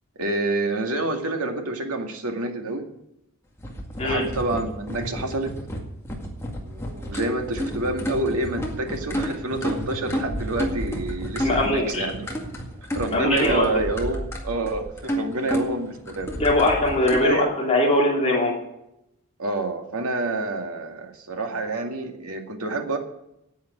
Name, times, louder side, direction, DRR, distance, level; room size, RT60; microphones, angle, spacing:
voice 1, 0.2-2.8 4.0-5.5 6.6-12.3 13.0-16.3 17.1-17.5 19.4-23.0, right 2 dB, 90° right, 3 dB, 2.0 m, -28 dB
sound 1, 3.6-17.2, equal, 10° left, 2.0 m, -31 dB
voice 2, 11.4-12.1 13.1-13.8 16.3-18.6, left 1 dB, 30° left, -2 dB, 2.9 m, -21 dB
9.4 x 9.0 x 9.3 m, 0.83 s
head